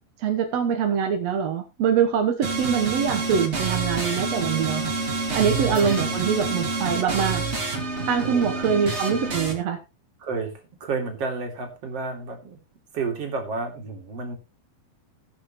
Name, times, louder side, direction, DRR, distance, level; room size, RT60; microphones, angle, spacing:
voice 1, 0.2-4.9 5.3-7.4 8.1-9.8, right 7 dB, 65° right, 5 dB, 1.6 m, -24 dB
sound 1, 2.4-9.5, right 3 dB, 25° right, 1.4 m, -28 dB
voice 2, 5.3-6.2 8.2-8.7 10.2-10.5 10.8-12.6 12.9-14.4, right 4 dB, 40° right, 3 dB, 3.1 m, -31 dB
20.0 x 6.8 x 3.1 m, 0.27 s
omnidirectional pair, 4.5 m